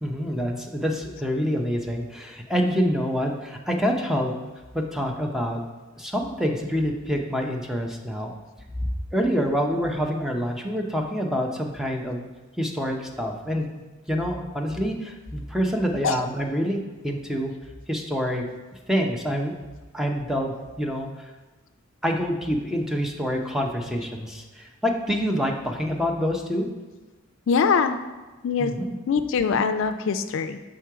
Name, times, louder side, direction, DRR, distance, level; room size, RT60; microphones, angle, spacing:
voice 1, 0.0-4.3 4.7-5.6 6.0-8.3 9.1-12.3 12.6-13.7 14.1-17.5 17.9-18.4 18.9-19.5 19.9-21.1 22.0-26.7 28.6-29.0, equal, ahead, 1 dB, 0.6 m, -26 dB
voice 2, 27.5-28.0 28.4-28.7 29.1-30.6, left 5 dB, 65° left, 9 dB, 0.3 m, -23 dB
6.2 x 3.7 x 4.6 m, 1.2 s
head